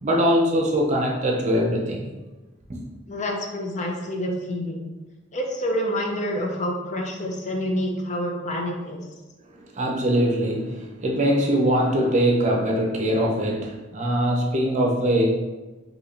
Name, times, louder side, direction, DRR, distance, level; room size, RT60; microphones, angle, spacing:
voice 1, 0.0-2.1 2.7-2.8 9.7-15.3, equal, 40° right, -1 dB, 0.6 m, -22 dB
voice 2, 3.1-4.9 5.3-9.0, equal, 40° left, 1 dB, 0.5 m, -27 dB
2.8 x 2.6 x 4.2 m, 1.2 s
head